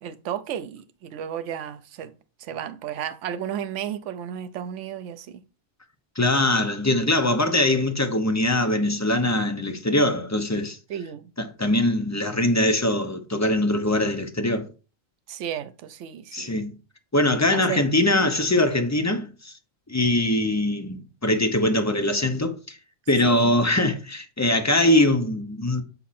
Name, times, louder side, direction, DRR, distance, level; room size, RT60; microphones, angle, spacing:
voice 1, 0.0-2.1 2.4-5.4 10.9-11.3 15.3-16.6 17.5-17.9 23.2-23.5, right 9 dB, 70° right, 1.0 m, -33 dB
voice 2, 6.2-10.8 11.4-14.7 16.3-16.7 17.1-19.5 19.9-22.8 23.1-25.8, left 1 dB, 15° left, 0.7 m, -22 dB
8.3 x 4.2 x 4.2 m
omnidirectional pair, 1.3 m